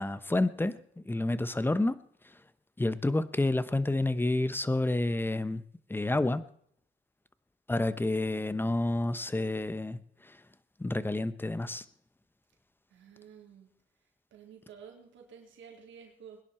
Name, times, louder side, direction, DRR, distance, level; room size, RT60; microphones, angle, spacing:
voice 1, 0.0-2.0 2.8-5.6 5.9-6.4 7.7-10.0 10.8-11.8, left 2 dB, 10° left, 15 dB, 1.0 m, -29 dB
voice 2, 12.9-13.7 14.3-16.4, right 7 dB, 70° right, 2 dB, 3.7 m, -52 dB
21.5 x 10.5 x 4.4 m, 0.66 s
cardioid pair, 90°, 20 cm